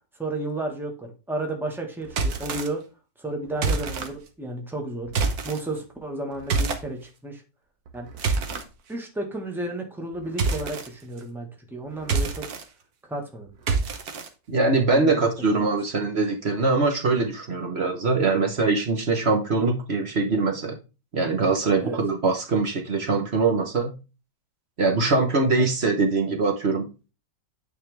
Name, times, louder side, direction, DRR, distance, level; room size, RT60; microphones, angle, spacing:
voice 1, 0.2-2.8 3.2-5.1 5.4-7.4 7.9-8.1 8.9-12.5 13.1-13.5 14.9-15.7 21.8-22.0, right 2 dB, ahead, 1 dB, 1.5 m, -32 dB
sound 1, 2.1-2.7 3.6-4.1 5.1-5.6 6.5-6.8 7.9-8.6 10.4-10.9 12.0-12.6 13.7-14.3, right 4 dB, 60° right, 1.4 m, -26 dB
voice 2, 14.5-20.8 21.1-24.0 24.8-26.9, right 3 dB, 40° right, 3 dB, 1.2 m, -23 dB
9.2 x 4.4 x 3.3 m, 0.30 s
omnidirectional pair, 1.9 m